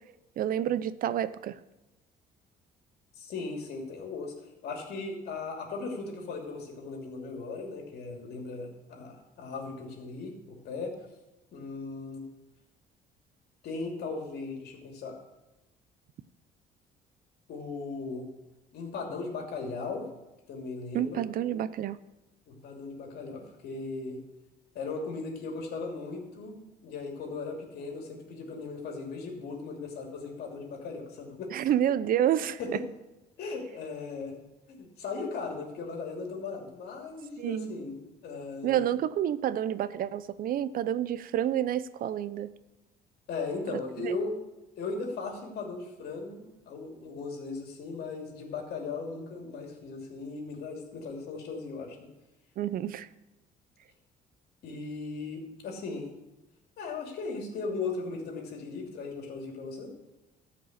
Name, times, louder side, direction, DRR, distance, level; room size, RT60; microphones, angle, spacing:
voice 1, 0.4-1.6 20.9-22.0 31.5-32.6 37.4-37.7 38.6-42.5 44.0-44.2 52.6-53.1, right 11 dB, 60° right, 16 dB, 0.6 m, -29 dB
voice 2, 3.2-4.3 4.6-10.9 11.5-12.2 13.6-15.2 17.5-18.3 18.7-20.1 20.5-21.2 22.5-24.2 24.7-26.5 26.8-31.7 32.3-32.9 33.4-34.4 34.7-38.9 43.3-44.3 44.8-52.0 54.6-56.1 56.8-59.9, left 4 dB, 70° left, 2 dB, 2.9 m, -37 dB
13.5 x 5.3 x 8.1 m, 1.0 s
cardioid pair, 110°, 17 cm